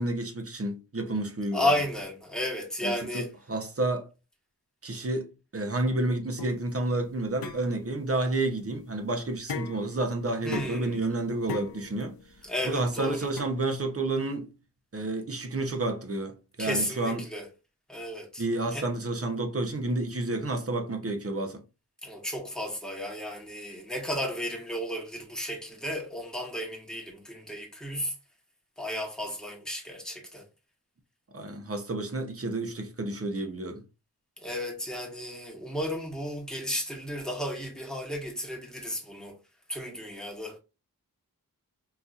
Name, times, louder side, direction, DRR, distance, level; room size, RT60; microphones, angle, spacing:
voice 1, 0.0-1.7 2.8-4.1 4.8-12.1 12.6-14.5 14.9-17.3 18.4-21.6 31.3-33.8, right 2 dB, 40° right, 0.7 m, -30 dB
voice 2, 1.5-3.3 10.4-11.0 12.4-13.3 16.6-17.5 17.9-18.4 18.7-18.9 22.0-28.1 28.8-30.4 34.4-39.4 39.7-40.6, left 1 dB, ahead, 1.1 m, -33 dB
sound 1, 6.4-13.4, left 5 dB, 85° left, 0.7 m, -41 dB
4.0 x 2.7 x 2.4 m
wide cardioid pair, 95°, 35 cm